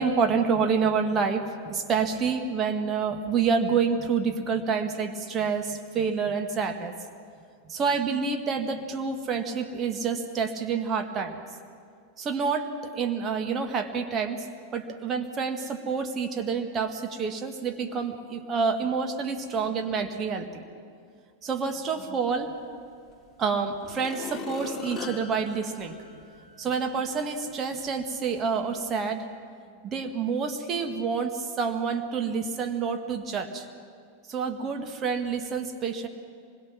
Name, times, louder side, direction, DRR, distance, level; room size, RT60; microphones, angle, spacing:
voice 1, 0.0-7.0 7.6-11.4 12.2-14.5 14.7-20.7 21.4-22.5 23.4-26.0 26.6-29.3 29.8-33.7 34.3-36.1, right 5 dB, 25° right, 5 dB, 1.8 m, -28 dB
sound 1, 23.1-23.2 23.8-26.6 27.1-27.2, left 4 dB, 15° left, 3.3 m, -39 dB
25.5 x 21.5 x 6.1 m, 2.3 s
figure-of-eight pair, 90°, 0 cm